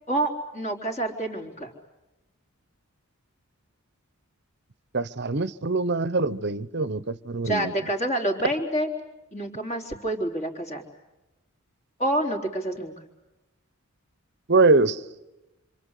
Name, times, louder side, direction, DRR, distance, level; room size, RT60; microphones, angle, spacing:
voice 1, 0.1-1.7 7.4-8.9 9.3-10.8 12.0-12.9, right 1 dB, 30° left, 3.9 m, -27 dB
voice 2, 4.9-7.7 14.5-15.0, right 3 dB, 50° right, 0.9 m, -23 dB
27.0 x 26.5 x 8.3 m
head